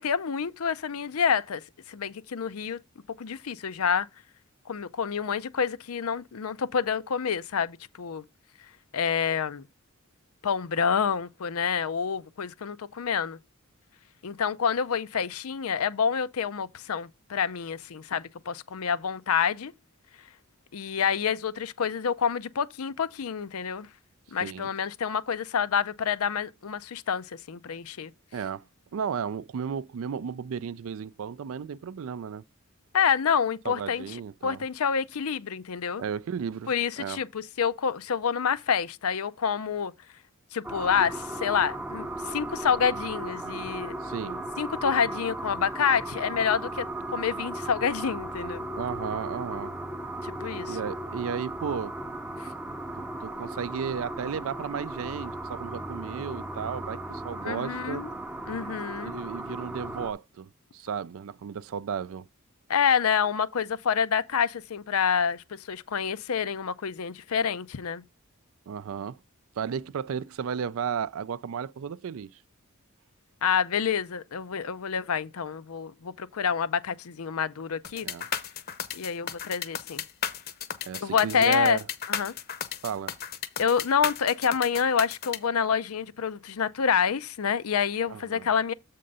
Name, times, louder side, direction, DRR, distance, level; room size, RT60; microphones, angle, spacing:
voice 1, 0.0-1.6 1.9-2.8 3.2-4.1 4.7-8.2 8.9-9.6 10.4-13.4 14.2-19.7 20.7-23.9 24.3-28.1 32.9-36.0 36.7-39.9 40.5-43.9 44.6-48.7 50.2-50.8 52.4-52.5 57.4-58.1 58.5-59.1 62.7-68.0 73.4-78.1 78.9-80.0 81.0-81.8 82.1-82.3 83.6-88.7, left 7 dB, 80° left, 0.6 m, -28 dB
voice 2, 28.3-28.6 28.9-32.4 33.6-34.6 36.0-37.2 44.0-44.5 48.8-49.8 50.7-52.0 53.2-58.0 59.0-62.3 68.7-69.2 69.6-72.3 78.0-78.3 80.8-81.8 82.8-83.2 88.1-88.5, right 7 dB, 70° right, 0.4 m, -34 dB
sound 1, 40.6-60.1, right 1 dB, 10° right, 0.6 m, -36 dB
sound 2, 77.8-85.4, left 8 dB, 45° left, 0.8 m, -34 dB
7.7 x 3.7 x 5.3 m
head